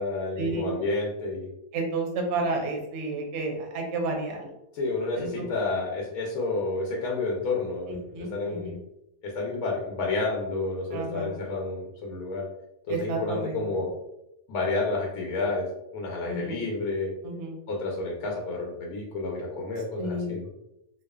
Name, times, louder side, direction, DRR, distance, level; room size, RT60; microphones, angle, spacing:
voice 1, 0.0-1.5 4.7-8.8 9.2-12.4 12.9-14.0 14.5-17.1 17.7-20.5, left 3 dB, 85° left, -1 dB, 1.1 m, -30 dB
voice 2, 1.7-4.5 5.2-5.5 7.9-8.8 10.9-11.3 12.9-13.6 16.2-16.6 17.2-17.6 20.0-20.4, right 2 dB, 65° right, 2 dB, 0.8 m, -31 dB
2.7 x 2.3 x 2.3 m, 0.86 s
omnidirectional pair, 1.5 m